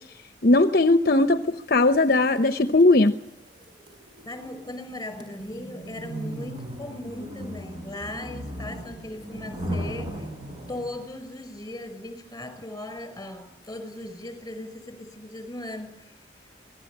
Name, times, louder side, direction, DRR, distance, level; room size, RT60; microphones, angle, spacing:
voice 1, 0.4-3.1, left 2 dB, 55° left, 9 dB, 1.0 m, -19 dB
sound 1, 1.8-11.1, equal, 25° right, 6.6 m, -37 dB
voice 2, 4.3-10.3 10.7-16.1, left 1 dB, 20° left, 10 dB, 5.8 m, -38 dB
26.0 x 18.5 x 8.7 m, 0.79 s
head